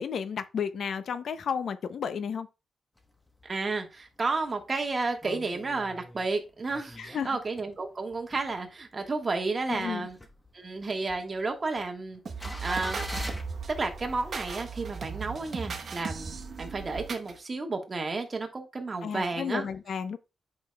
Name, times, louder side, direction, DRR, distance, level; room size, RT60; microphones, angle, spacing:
voice 1, 0.0-2.5 7.0-7.4 9.7-10.1 19.0-20.2, left 7 dB, 70° left, 0.5 m, -32 dB
sound 1, 3.0-3.6 4.0-4.1 4.3-7.8 8.1-9.1 9.5-13.4, left 1 dB, 15° left, 1.0 m, -42 dB
voice 2, 3.4-10.2 10.5-12.2 12.6-13.0 13.8-19.6, right 3 dB, 35° right, 1.4 m, -32 dB
sound 2, 12.3-17.3, right 5 dB, 55° right, 1.1 m, -37 dB
9.1 x 5.3 x 2.2 m
wide cardioid pair, 120°, 0 cm